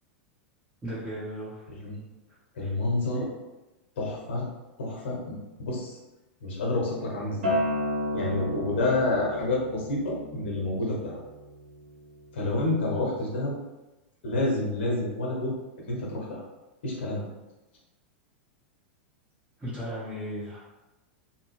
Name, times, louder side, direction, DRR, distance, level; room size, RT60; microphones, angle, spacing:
voice 1, 0.8-1.6 2.6-2.7 19.6-20.6, equal, 15° right, -14 dB, 1.4 m, -35 dB
voice 2, 2.6-3.3 4.0-4.5 4.8-6.0 6.4-7.4 8.1-11.2 12.3-13.5 14.2-15.5 15.8-16.4 16.8-17.2, left 2 dB, 70° left, -2 dB, 1.2 m, -29 dB
Acoustic guitar, 7.4-12.6, left 1 dB, 80° right, 1.2 m, -33 dB
2.8 x 2.6 x 3.2 m, 1.1 s
hypercardioid pair, 95°, 6 cm